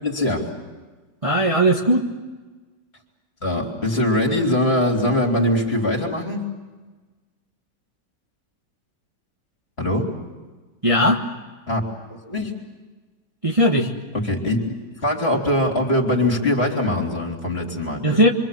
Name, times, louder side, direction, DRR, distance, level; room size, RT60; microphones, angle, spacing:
voice 1, 0.0-0.5 3.4-6.4 9.8-10.1 11.7-11.9 12.3-12.5 14.1-14.8 15.0-18.3, left 1 dB, 35° left, 1 dB, 3.9 m, -22 dB
voice 2, 1.2-2.0 10.8-11.2 13.4-13.9 18.0-18.3, equal, 20° right, 0 dB, 1.4 m, -17 dB
27.0 x 25.0 x 7.6 m, 1.3 s
omnidirectional pair, 1.9 m